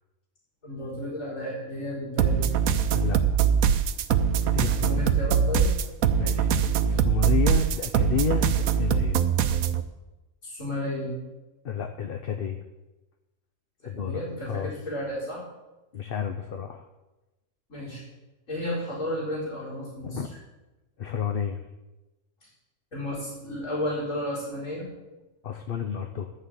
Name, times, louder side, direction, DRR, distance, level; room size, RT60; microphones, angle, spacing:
voice 1, 0.6-2.5 4.8-5.7 10.4-11.1 13.8-15.4 17.7-18.0 18.5-20.2 22.9-24.8, left 1 dB, 75° left, -9 dB, 4.8 m, -32 dB
sound 1, 2.2-9.8, right 7 dB, 85° right, 1.1 m, -23 dB
voice 2, 2.9-3.5 4.5-5.0 6.2-6.5 6.8-9.2 11.6-12.6 13.8-14.8 15.9-16.9 20.0-20.3 21.0-21.6 25.4-26.3, left 7 dB, 50° left, 5 dB, 0.8 m, -31 dB
11.0 x 6.5 x 8.1 m, 1.1 s
omnidirectional pair, 1.4 m